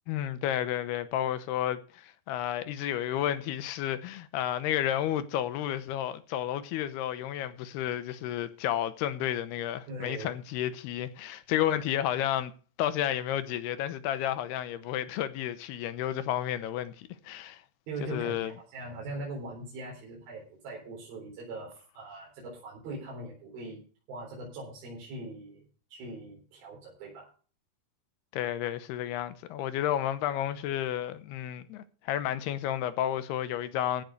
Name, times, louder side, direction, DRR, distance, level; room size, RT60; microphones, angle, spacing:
voice 1, 0.1-12.5 12.8-17.6 18.0-18.5 28.3-34.0, left 11 dB, 80° left, 3.0 m, -31 dB
voice 2, 9.9-10.3 17.9-23.8 24.1-27.3, right 2 dB, 65° right, 5.8 m, -41 dB
15.5 x 6.0 x 6.6 m
omnidirectional pair, 4.6 m